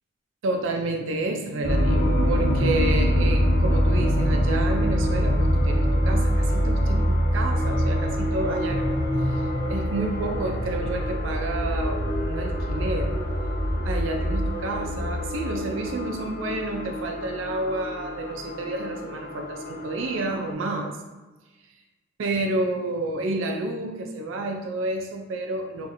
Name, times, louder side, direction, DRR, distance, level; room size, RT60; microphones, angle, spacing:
voice 1, 0.4-8.9 9.2-13.1 13.8-21.0 22.2-25.9, right 2 dB, 80° right, 2 dB, 0.4 m, -30 dB
sound 1, 1.6-20.5, equal, 55° left, 0.7 m, -24 dB
4.1 x 2.4 x 2.5 m, 1.2 s
head